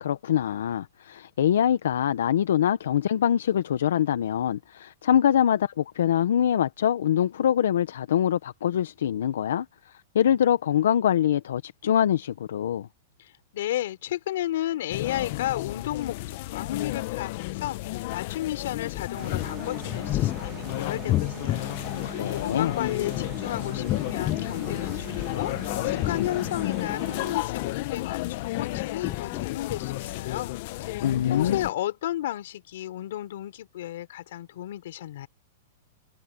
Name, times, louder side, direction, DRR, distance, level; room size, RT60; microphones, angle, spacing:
voice 1, 0.0-12.9 22.0-22.7 31.0-31.6, left 10 dB, 85° left, 1.0 m, -24 dB
voice 2, 13.5-17.8 18.1-21.8 22.0-30.5 30.8-35.3, left 13 dB, 65° left, 4.1 m, -33 dB
sound 1, 14.9-31.7, left 19 dB, 45° left, 0.9 m, -32 dB
sound 2, 18.9-21.7 22.9-25.6 25.9-28.0 28.5-30.0 30.3-30.4, left 15 dB, 25° left, 0.4 m, -32 dB
sound 3, 19.1-27.3, right 12 dB, 25° right, 1.7 m, -43 dB
supercardioid pair, 160°, 0 cm